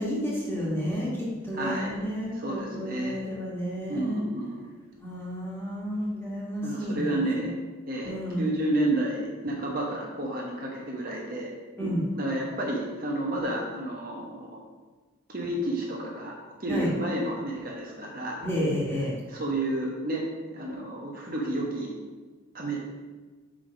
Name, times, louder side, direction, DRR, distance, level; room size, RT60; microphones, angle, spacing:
voice 1, 0.0-4.2 5.0-7.2 8.0-8.4 11.8-12.1 16.7-16.9 18.4-19.2, equal, 10° left, -6 dB, 1.8 m, -31 dB
voice 2, 1.5-1.9 2.3-3.2 3.9-4.6 6.6-7.5 7.9-11.5 11.8-14.6 15.3-16.3 16.6-18.4 19.3-20.2 20.5-21.9 22.5-22.8, right 1 dB, 45° right, -2 dB, 1.1 m, -31 dB
5.9 x 5.0 x 5.0 m, 1.3 s
head